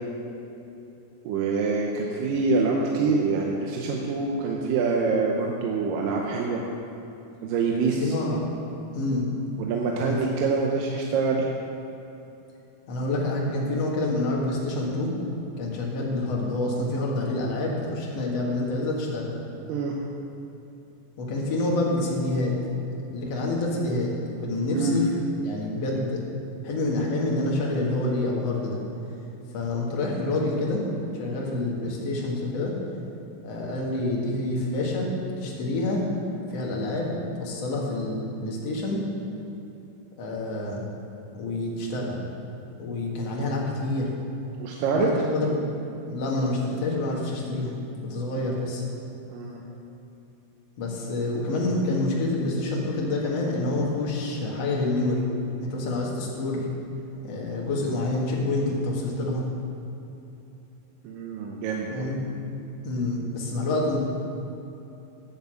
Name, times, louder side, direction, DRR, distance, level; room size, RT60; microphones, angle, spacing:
voice 1, 1.2-6.6 7.4-8.2 9.6-11.5 19.7-20.0 24.7-25.0 44.6-45.1 49.3-49.6 61.0-62.1, right 4 dB, 80° right, 0 dB, 2.4 m, -25 dB
voice 2, 8.0-8.5 8.9-9.3 10.0-10.2 12.9-15.1 15.6-19.3 21.2-22.6 23.1-24.1 24.4-25.1 25.4-26.2 26.6-28.8 29.5-30.8 31.2-32.7 33.4-35.1 35.4-36.0 36.5-39.0 40.2-40.8 41.3-42.2 42.8-44.1 44.9-45.5 46.1-47.8 48.0-48.8 50.8-55.3 55.6-56.6 57.2-59.5 61.9-62.2 62.8-64.0, left 2 dB, 55° left, -3 dB, 2.5 m, -27 dB
10.0 x 7.1 x 7.5 m, 2.9 s
omnidirectional pair, 4.0 m